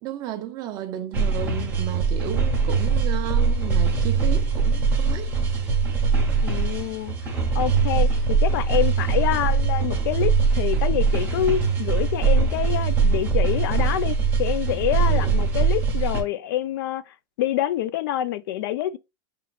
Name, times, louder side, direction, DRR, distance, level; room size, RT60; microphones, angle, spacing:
voice 1, 0.0-5.4 15.1-15.4, right 11 dB, 30° right, 0.7 m, -33 dB
sound 1, 1.1-16.2, right 5 dB, 15° right, 1.2 m, -22 dB
voice 2, 6.4-19.0, left 12 dB, 60° left, 0.4 m, -27 dB
5.6 x 3.1 x 2.4 m
supercardioid pair, 165°, 13 cm